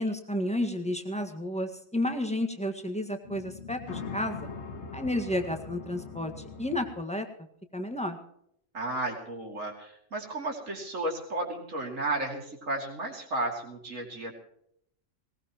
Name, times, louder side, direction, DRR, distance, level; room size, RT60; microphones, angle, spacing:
voice 1, 0.0-4.5 4.9-7.3 7.7-8.2, left 1 dB, 5° left, 5 dB, 1.6 m, -31 dB
sound 1, 3.3-6.9, left 4 dB, 60° left, 1.7 m, -41 dB
voice 2, 8.7-14.3, right 2 dB, 85° right, 0 dB, 3.0 m, -33 dB
19.5 x 18.0 x 3.0 m, 0.71 s
omnidirectional pair, 1.3 m